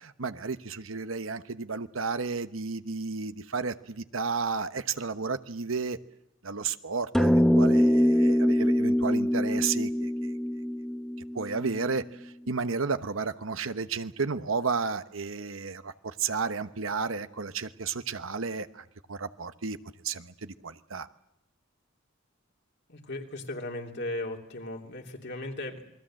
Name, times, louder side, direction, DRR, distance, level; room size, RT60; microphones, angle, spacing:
voice 1, 0.0-6.0 6.4-10.4 11.3-19.8 20.0-21.1, right 4 dB, 85° right, 10 dB, 1.1 m, -32 dB
sound 1, 7.1-11.8, equal, ahead, 1.1 m, -24 dB
voice 2, 22.9-25.8, left 1 dB, 60° left, 2 dB, 3.1 m, -37 dB
28.0 x 21.5 x 7.7 m, 0.82 s
head